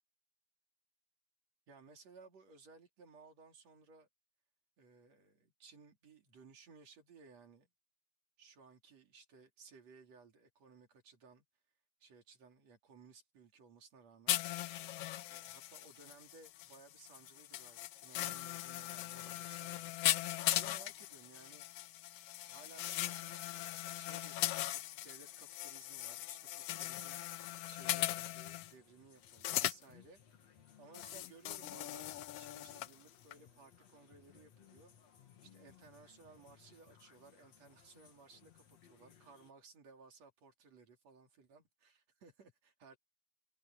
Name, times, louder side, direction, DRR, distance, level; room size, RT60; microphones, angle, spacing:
voice 1, 1.7-4.1 4.8-7.7 8.4-11.4 12.0-14.4 15.3-21.7 22.4-27.2 27.7-32.1 32.4-34.9 35.4-43.0, right 4 dB, 55° right, 4.2 m, -60 dB
sound 1, 14.3-28.7 29.3-29.8 30.9-32.9 33.3-33.4, left 14 dB, 75° left, 1.4 m, -39 dB
sound 2, 27.4-39.5, left 8 dB, 60° left, 3.1 m, -64 dB
omnidirectional pair, 3.5 m